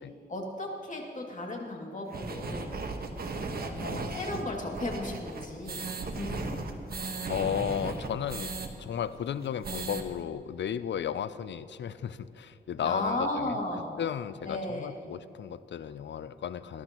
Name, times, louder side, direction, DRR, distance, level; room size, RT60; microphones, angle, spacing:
voice 1, 0.3-2.8 3.8-6.7 12.8-13.9 14.4-15.0, left 1 dB, 40° left, 0 dB, 2.5 m, -35 dB
sound 1, 2.1-8.7 9.0-9.1 9.4-10.0, right 3 dB, 55° right, 1.2 m, -36 dB
voice 2, 3.8-4.2 7.3-8.5 8.8-13.6 14.0-16.8, left 9 dB, 75° left, 14 dB, 0.5 m, -34 dB
19.5 x 11.5 x 3.0 m, 2.7 s
cardioid pair, 65°, 19 cm